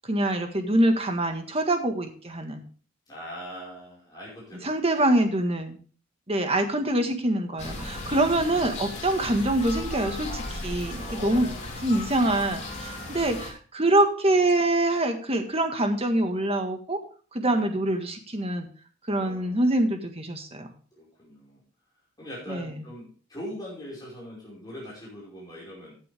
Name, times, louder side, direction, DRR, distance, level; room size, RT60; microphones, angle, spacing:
voice 1, 0.0-2.6 4.6-5.8 6.3-11.5 11.8-17.0 17.3-18.7 19.1-20.7 22.5-22.7, right 1 dB, 30° right, 5 dB, 1.7 m, -25 dB
voice 2, 3.1-4.7 7.7-8.1 10.5-11.8 13.1-13.3 17.4-17.7 19.1-19.7 20.9-21.6 22.2-25.9, equal, 20° left, -6 dB, 5.3 m, -42 dB
sound 1, 7.6-13.5, left 2 dB, 35° left, 3.7 m, -36 dB
15.0 x 8.4 x 3.6 m, 0.41 s
head